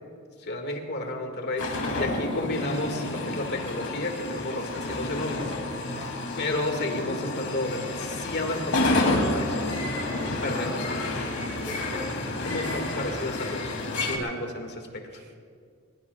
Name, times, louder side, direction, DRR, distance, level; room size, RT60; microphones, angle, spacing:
voice 1, 0.4-5.5 6.4-11.8 12.4-15.0, left 2 dB, 50° left, 3 dB, 2.0 m, -32 dB
sound 1, 1.6-14.2, left 2 dB, 75° left, 2.8 m, -30 dB
voice 2, 1.9-2.2 5.8-6.2 11.5-12.2 15.1-15.4, right 1 dB, 50° right, 3 dB, 2.2 m, -43 dB
22.5 x 21.5 x 2.4 m, 2.2 s
head